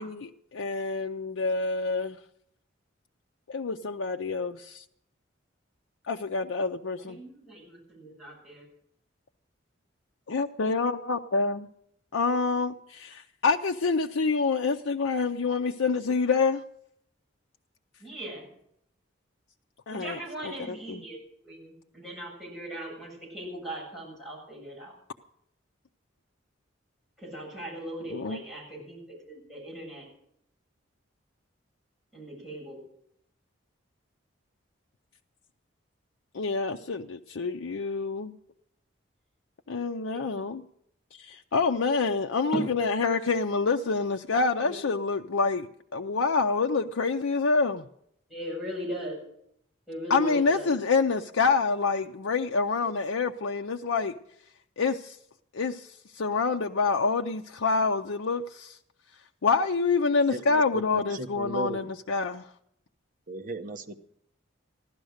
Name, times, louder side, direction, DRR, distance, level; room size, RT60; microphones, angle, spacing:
voice 1, 0.0-2.2 3.5-4.8 6.1-7.2 10.3-11.7 12.1-16.6 19.9-21.0 28.1-28.4 36.3-38.4 39.7-40.6 41.2-47.8 50.1-54.1 54.8-55.2 55.5-58.8 59.4-62.5, left 4 dB, 80° left, 4 dB, 0.6 m, -27 dB
voice 2, 7.0-8.6 18.0-18.5 19.9-21.2 21.4-24.9 27.2-30.1 32.1-32.8 40.1-40.5 42.5-42.7 44.6-44.8 48.3-49.2 49.9-50.7, right 1 dB, ahead, -6 dB, 7.9 m, -38 dB
voice 3, 60.3-61.9 63.3-64.0, right 2 dB, 40° right, 5 dB, 0.9 m, -36 dB
15.5 x 12.0 x 6.5 m, 0.71 s
head